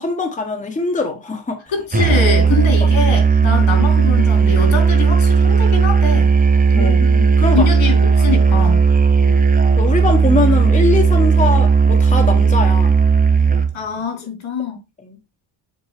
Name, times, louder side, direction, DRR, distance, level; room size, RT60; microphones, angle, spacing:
voice 1, 0.0-1.6 2.5-2.6 6.7-7.7 9.2-9.4 9.8-12.9 15.0-15.2, left 3 dB, 15° left, 1.1 m, -22 dB
voice 2, 1.7-6.3 6.8-7.0 7.5-8.8 13.7-14.8, left 4 dB, 75° left, 3.6 m, -23 dB
Musical instrument, 1.9-13.8, right 5 dB, 20° right, 0.6 m, -14 dB
7.4 x 5.3 x 3.4 m
wide cardioid pair, 150°, 47 cm